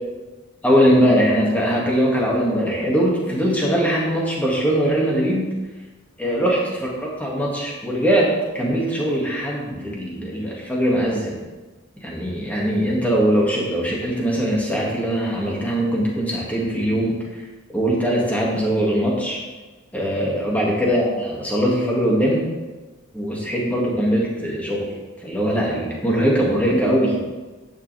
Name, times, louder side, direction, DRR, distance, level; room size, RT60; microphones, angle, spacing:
voice 1, 0.6-5.5 6.2-11.4 12.0-17.4 17.7-19.4 19.9-22.4 23.1-24.9 25.2-27.2, equal, 5° left, -4 dB, 2.3 m, -21 dB
11.5 x 9.3 x 3.5 m, 1.2 s
head